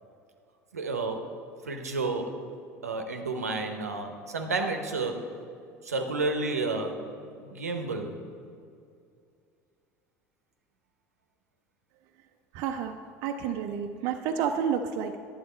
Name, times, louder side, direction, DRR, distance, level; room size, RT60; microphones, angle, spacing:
voice 1, 0.7-1.4 1.6-2.4 2.8-5.3 5.8-7.0 7.4-8.2, right 3 dB, 85° right, 5 dB, 0.8 m, -31 dB
voice 2, 12.5-15.2, right 7 dB, 55° right, 5 dB, 0.5 m, -30 dB
10.5 x 7.5 x 4.3 m, 2.4 s
figure-of-eight pair, 70°, 8 cm